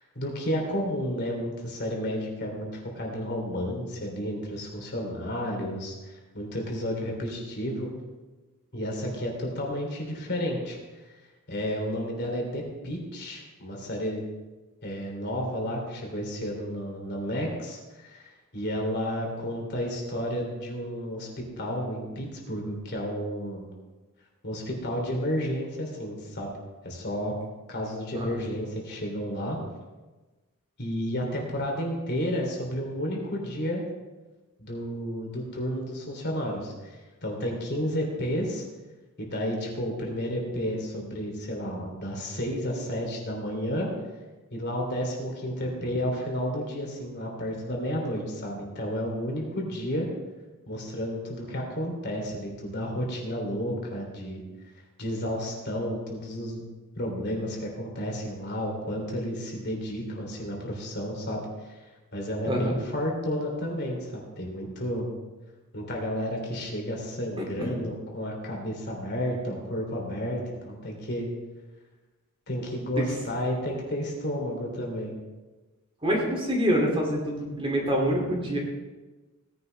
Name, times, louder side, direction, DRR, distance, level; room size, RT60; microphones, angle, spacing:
voice 1, 0.0-7.9 8.7-10.8 11.5-14.2 14.8-23.7 24.4-26.5 26.8-27.3 27.7-29.6 30.8-33.8 34.6-38.6 39.2-43.9 44.5-50.1 50.7-54.4 55.0-56.7 57.0-61.8 62.1-65.1 65.7-71.3 72.5-75.1, equal, 50° left, 0 dB, 3.0 m, -31 dB
voice 2, 76.0-78.6, equal, 25° right, 0 dB, 2.5 m, -26 dB
17.5 x 10.5 x 3.3 m, 1.2 s
head